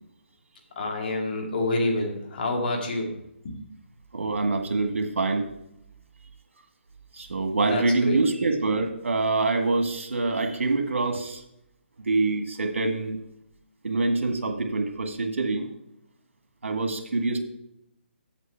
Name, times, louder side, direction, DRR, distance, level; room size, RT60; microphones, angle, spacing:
voice 1, 0.8-3.1 3.4-3.6 7.6-8.2, left 2 dB, 50° left, 1 dB, 2.2 m, -28 dB
voice 2, 4.1-5.5 7.1-11.4 12.1-13.2 13.8-15.7 16.6-17.4, right 3 dB, 80° right, 4 dB, 1.7 m, -25 dB
8.1 x 7.7 x 4.5 m, 0.81 s
hypercardioid pair, 150°, 7 cm